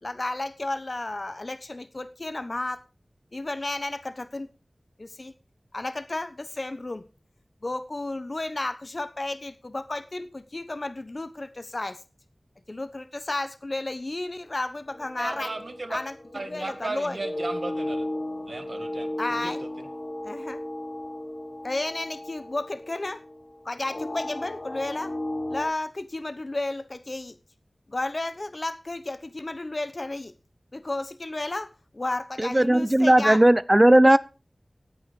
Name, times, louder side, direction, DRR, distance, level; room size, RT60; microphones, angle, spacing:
voice 1, 0.0-2.8 3.3-4.5 5.0-5.3 5.7-7.0 7.6-12.0 12.7-15.5 15.9-16.1 16.5-17.2 19.2-19.6 20.2-20.6 21.6-23.2 23.6-25.1 25.5-27.3 27.9-30.3 30.7-31.7 31.9-33.4, left 2 dB, 50° left, 1.0 m, -32 dB
sound 1, 14.9-25.7, left 1 dB, 80° left, 7.1 m, -35 dB
voice 2, 15.2-16.0 16.3-18.1 18.5-19.1 19.4-19.5 19.8-19.9, right 2 dB, 65° right, 1.8 m, -35 dB
voice 3, 32.4-34.2, right 1 dB, 25° right, 0.8 m, -17 dB
15.5 x 9.1 x 5.1 m
wide cardioid pair, 55°, 0 cm